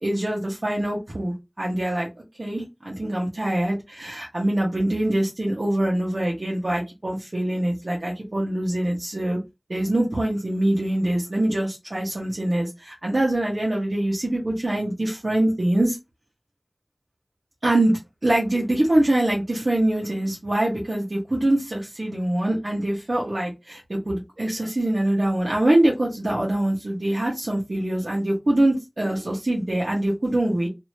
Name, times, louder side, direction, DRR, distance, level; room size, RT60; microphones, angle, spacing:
voice 1, 0.0-2.1 2.4-9.4 9.7-16.0 17.6-17.9 18.2-30.7, right 1 dB, 75° right, -3 dB, 1.0 m, -24 dB
3.1 x 2.7 x 2.7 m, 0.22 s
wide cardioid pair, 40°, 0 cm